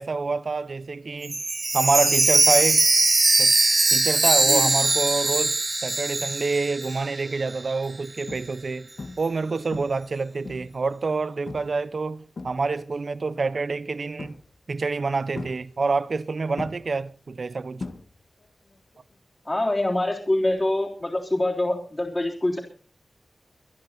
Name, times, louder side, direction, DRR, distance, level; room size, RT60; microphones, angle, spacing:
voice 1, 0.0-1.4 1.7-2.9 3.4-3.5 3.9-8.9 9.2-14.4 14.7-17.8, right 4 dB, 55° right, 0.7 m, -27 dB
Chime, 1.2-7.2 7.5-7.6 8.2-8.3, right 2 dB, 30° right, 0.9 m, -21 dB
voice 2, 4.5-4.8 19.5-22.6, left 1 dB, 25° left, 3.7 m, -25 dB
sound 1, 7.7-7.8 8.3-8.7 9.0-9.4 9.7-10.9 11.5-11.8 12.1-13.0 14.2-14.7 15.4-16.2 16.6-18.5 18.7-19.1 21.2-21.3, left 3 dB, 55° left, 1.6 m, -39 dB
24.0 x 10.5 x 4.2 m
wide cardioid pair, 95°, 0 cm